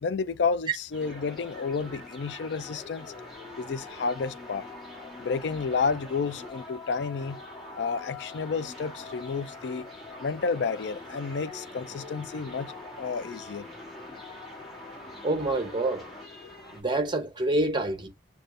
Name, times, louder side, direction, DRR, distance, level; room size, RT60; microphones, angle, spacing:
voice 1, 0.0-3.1 3.6-4.7 5.2-7.4 7.8-9.9 10.2-13.7 14.1-14.2, left 5 dB, 70° left, 0.4 m, -31 dB
sound 1, 0.9-16.8, left 2 dB, ahead, 2.1 m, -43 dB
voice 2, 15.2-16.1 16.7-18.1, right 2 dB, 25° right, 0.9 m, -27 dB
6.6 x 2.4 x 2.5 m
head